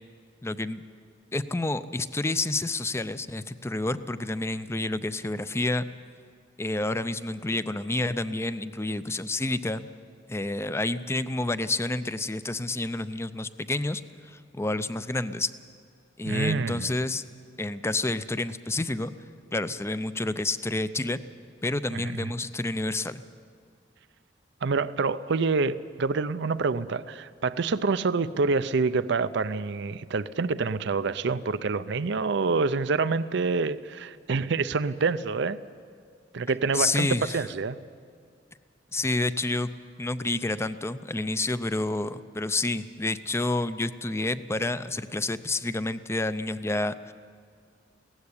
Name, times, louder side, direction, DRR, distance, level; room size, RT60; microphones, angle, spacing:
voice 1, 0.4-0.8 1.3-5.9 6.6-9.9 10.3-15.5 16.2-17.2 17.6-19.1 19.5-21.2 21.6-23.2 36.7-37.4 38.9-39.7 40.0-47.1, left 2 dB, 15° left, 13 dB, 0.5 m, -29 dB
voice 2, 16.2-16.9 21.9-22.3 24.6-35.6 36.3-37.8, right 4 dB, 65° right, 14 dB, 0.6 m, -27 dB
17.0 x 15.5 x 9.8 m, 2.2 s
head